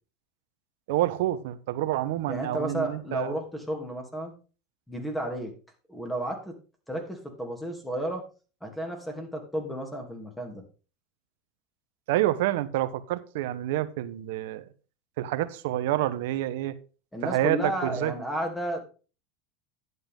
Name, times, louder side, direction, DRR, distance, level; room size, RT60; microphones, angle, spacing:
voice 1, 0.9-3.3 12.1-14.7 15.2-16.8 17.2-18.1, right 14 dB, 75° right, 1.0 m, -28 dB
voice 2, 2.3-4.3 4.9-5.5 5.9-6.5 6.9-8.2 8.6-10.6 17.1-18.8, right 1 dB, 5° left, 2.7 m, -32 dB
11.0 x 7.8 x 3.7 m
supercardioid pair, 115°, 0 cm